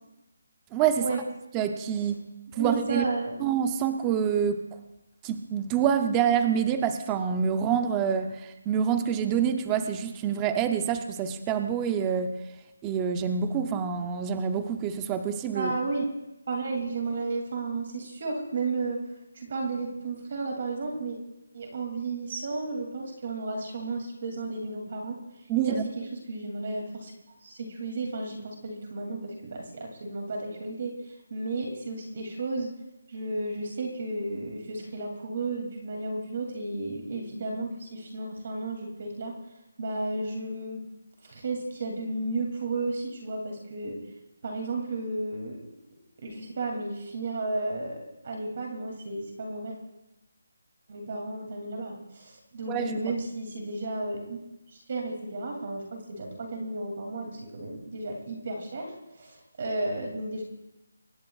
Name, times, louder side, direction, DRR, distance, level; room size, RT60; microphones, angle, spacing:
voice 1, 0.7-1.1 1.5-2.2 2.6-3.0 3.4-4.6 5.2-12.3 12.8-15.7 25.5-25.8 52.7-53.0, right 8 dB, 10° right, 8 dB, 0.5 m, -26 dB
voice 2, 2.5-3.4 15.5-16.1 16.5-19.0 19.3-21.2 21.5-25.2 25.6-27.1 27.4-32.7 33.1-39.3 39.8-40.8 41.2-44.0 44.4-45.7 46.2-48.0 48.2-49.8 50.9-54.4 54.7-60.4, right 2 dB, 30° right, 2 dB, 2.5 m, -33 dB
24.0 x 19.5 x 2.3 m, 0.93 s
hypercardioid pair, 180°, 0 cm